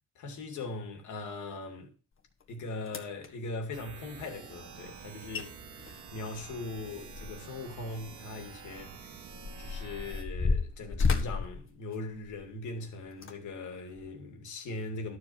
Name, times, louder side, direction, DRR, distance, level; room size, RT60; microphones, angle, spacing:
voice 1, 0.2-1.9 2.5-5.6 6.1-9.2 9.6-15.2, left 2 dB, 75° left, 2.7 m, -40 dB
sound 1, 2.4-2.5 2.9-3.3 5.0-5.1 5.3-5.4 5.8-7.6 7.9-8.1 8.8-12.5 13.1-13.3 13.9-14.1, left 4 dB, 45° left, 1.6 m, -32 dB
sound 2, 3.7-10.2, right 6 dB, 80° right, 2.0 m, -48 dB
12.0 x 4.9 x 7.2 m
cardioid pair, 90°, 30 cm